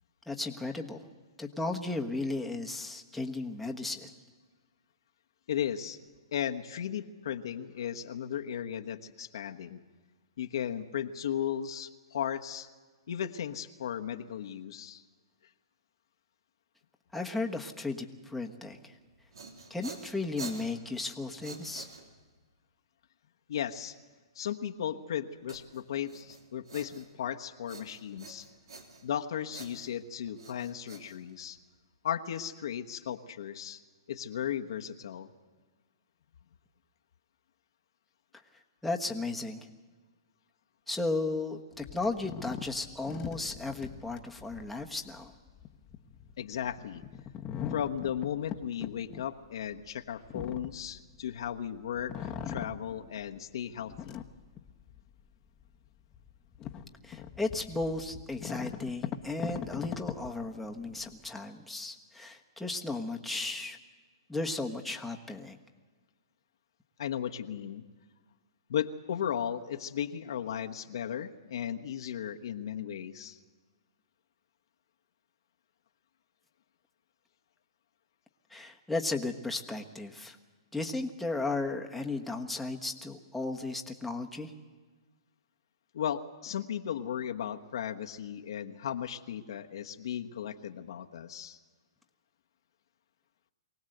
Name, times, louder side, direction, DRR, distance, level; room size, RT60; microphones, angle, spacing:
voice 1, 0.3-1.0 1.4-4.1 17.1-19.0 19.7-21.9 38.8-39.7 40.9-45.3 57.0-63.8 64.3-65.6 78.5-80.4 80.7-84.5, left 2 dB, ahead, 1 dB, 1.4 m, -35 dB
voice 2, 5.5-6.0 6.3-9.8 10.4-12.7 13.1-15.0 23.5-23.9 24.3-28.5 29.0-31.6 32.0-33.8 34.1-35.3 46.4-47.0 47.7-54.2 67.0-67.8 68.7-73.4 85.9-91.6, left 9 dB, 70° left, 5 dB, 1.3 m, -36 dB
sound 1, 19.0-22.4 25.5-27.3 27.7-29.2 29.5-31.8, right 4 dB, 85° right, 3.3 m, -48 dB
sound 2, 41.7-51.6 51.9-53.4 53.8-55.1 55.6-55.7 56.1-61.2, left 9 dB, 25° left, 1.2 m, -41 dB
23.5 x 18.0 x 8.0 m, 1.4 s
hypercardioid pair, 140°, 3 cm